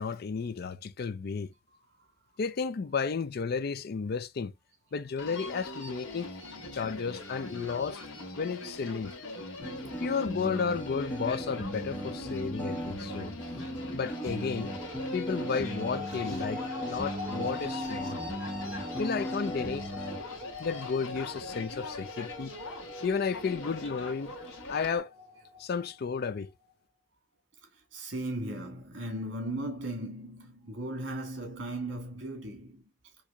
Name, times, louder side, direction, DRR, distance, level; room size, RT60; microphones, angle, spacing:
voice 1, 0.0-1.5 2.4-4.5 4.9-6.3 6.7-8.0 8.4-9.1 10.0-13.3 13.9-14.7 15.1-18.2 19.0-19.9 20.6-22.5 23.0-24.3 24.7-25.1 25.6-26.5, left 5 dB, 55° left, 0.4 m, -32 dB
Human voice, 5.2-25.0, left 1 dB, 85° left, 1.3 m, -42 dB
sound 1, 9.6-20.2, equal, 10° left, 0.9 m, -37 dB
sound 2, 14.2-26.4, left 3 dB, 45° right, 1.1 m, -44 dB
voice 2, 27.9-32.8, right 1 dB, 70° right, 1.8 m, -37 dB
4.4 x 2.8 x 2.3 m
head